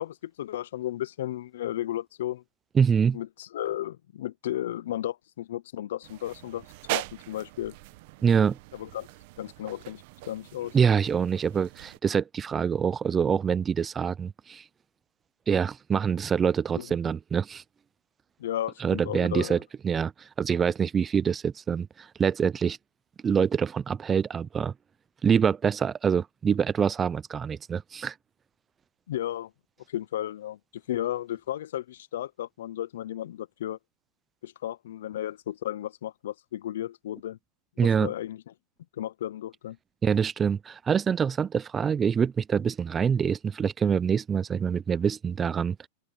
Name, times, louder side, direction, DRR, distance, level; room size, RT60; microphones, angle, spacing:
voice 1, 0.0-2.4 3.1-7.7 8.7-9.1 9.4-10.8 16.8-16.9 18.4-19.5 29.1-29.5 29.9-30.6 30.9-33.8 34.4-37.4 37.8-38.4 39.0-39.8, left 12 dB, 80° left, 0.4 m, -34 dB
voice 2, 2.7-3.2 8.2-8.6 10.7-14.6 15.5-17.6 18.8-22.8 23.2-24.7 25.2-28.1 37.8-38.1 40.0-45.9, right 7 dB, 20° right, 0.4 m, -25 dB
sound 1, 6.0-12.0, right 21 dB, 55° right, 0.8 m, -40 dB
open air
supercardioid pair, 140°, 0 cm